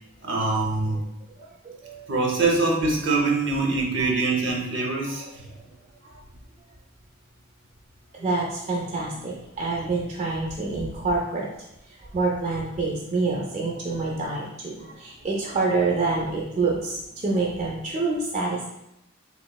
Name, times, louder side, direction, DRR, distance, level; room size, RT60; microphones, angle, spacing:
voice 1, 0.2-1.0 2.1-5.5, right 3 dB, 65° right, -1 dB, 0.7 m, -24 dB
voice 2, 1.4-2.1 5.1-5.2 6.0-6.2 8.1-11.5 11.9-18.6, right 3 dB, 35° right, -4 dB, 0.5 m, -27 dB
3.4 x 3.0 x 2.2 m, 0.85 s
head